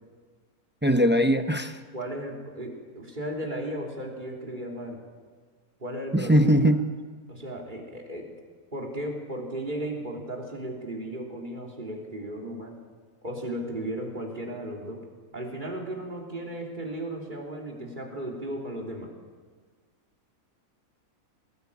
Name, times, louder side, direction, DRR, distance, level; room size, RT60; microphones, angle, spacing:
voice 1, 0.8-1.8 6.1-6.9, equal, 15° right, 8 dB, 0.4 m, -21 dB
voice 2, 1.9-5.0 5.8-6.4 7.3-8.3 8.7-12.8 13.2-15.0 15.3-19.1, right 1 dB, 30° right, 0 dB, 3.4 m, -35 dB
19.5 x 16.5 x 8.5 m, 1.5 s
omnidirectional pair, 1.6 m